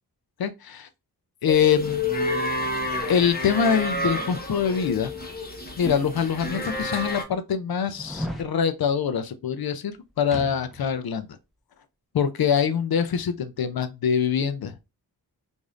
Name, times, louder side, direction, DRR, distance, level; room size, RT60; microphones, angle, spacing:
voice 1, 0.4-0.9 1.4-2.0 3.1-5.1 5.8-11.3 12.1-14.7, left 7 dB, 65° left, 0.5 m, -24 dB
sound 1, 1.5-7.2, left 1 dB, 25° left, 1.1 m, -29 dB
sound 2, 7.9-8.5 10.3-11.0 11.3-11.4, equal, ahead, 1.0 m, -34 dB
4.8 x 2.6 x 2.4 m
wide cardioid pair, 120°, 39 cm